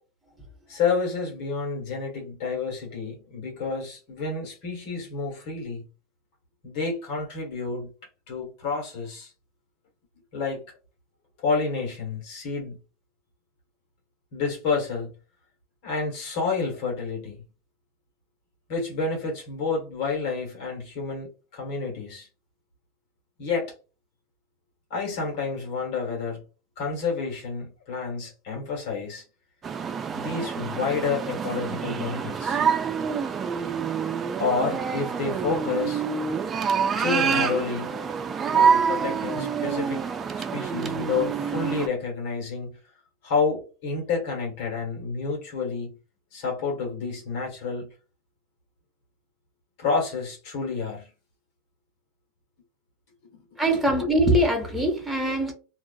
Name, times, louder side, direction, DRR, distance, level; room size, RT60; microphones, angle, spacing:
voice 1, 0.7-5.8 6.6-7.9 8.3-9.3 10.3-10.6 11.4-12.8 14.3-15.1 15.8-17.4 18.7-22.3 23.4-23.7 24.9-26.4 26.8-29.2 30.1-32.6 34.4-36.0 37.0-37.9 38.5-40.0 40.5-42.7 43.2-45.9 46.3-47.9 49.8-51.1 53.7-53.8, left 4 dB, 60° left, 1.2 m, -29 dB
sound 1, 29.6-41.9, right 6 dB, 30° right, 0.4 m, -27 dB
voice 2, 53.6-55.5, right 1 dB, ahead, 1.0 m, -22 dB
2.4 x 2.3 x 2.3 m
hypercardioid pair, 95°, 0 cm